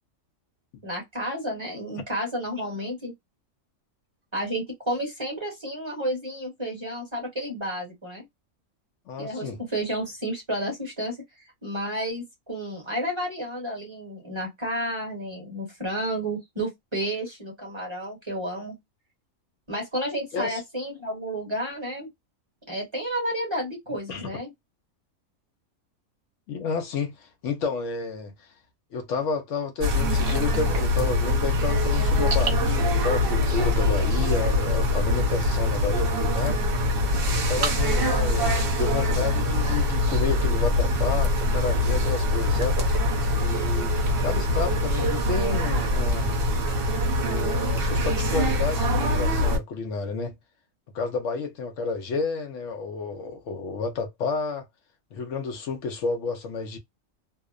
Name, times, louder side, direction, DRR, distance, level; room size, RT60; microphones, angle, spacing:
voice 1, 0.8-3.1 4.3-8.2 9.2-11.2 11.6-18.7 19.7-22.1 22.7-24.5, right 1 dB, 25° right, 1.0 m, -31 dB
voice 2, 9.1-9.6 20.3-20.6 24.1-24.3 26.5-28.3 28.9-36.6 37.2-42.8 43.3-46.4 47.2-50.4 50.9-54.7 55.1-56.8, left 4 dB, 70° left, 0.9 m, -30 dB
sound 1, 29.8-49.6, left 1 dB, 50° right, 0.9 m, -23 dB
2.7 x 2.0 x 2.3 m
omnidirectional pair, 1.4 m